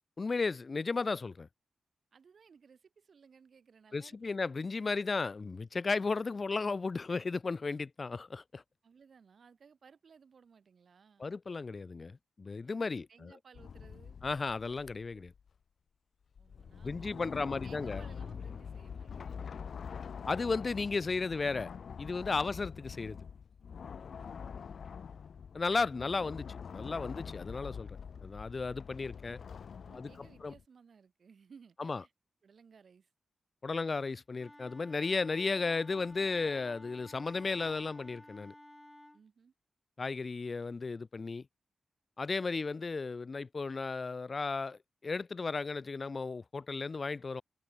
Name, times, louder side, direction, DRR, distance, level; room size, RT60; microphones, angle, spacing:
voice 1, 0.2-1.5 3.9-8.6 11.2-13.3 14.2-15.3 16.8-18.0 20.2-21.7 22.0-23.2 25.5-26.4 26.7-28.0 28.2-29.4 29.9-30.5 31.8-32.0 33.6-38.5 40.0-41.4 42.2-47.4, left 4 dB, 40° left, 1.5 m, -34 dB
voice 2, 2.1-4.4 8.8-11.3 12.8-14.2 16.4-19.7 20.2-20.3 22.4-22.8 24.5-25.4 25.9-26.4 29.8-32.1 32.4-33.1 39.1-39.5, right 6 dB, 60° right, 5.1 m, -60 dB
sound 1, 13.5-15.5 16.4-30.6, left 6 dB, 65° left, 3.0 m, -45 dB
Wind instrument woodwind instrument, 34.4-39.2, left 1 dB, 10° left, 6.7 m, -55 dB
wide cardioid pair, 105°, 0 cm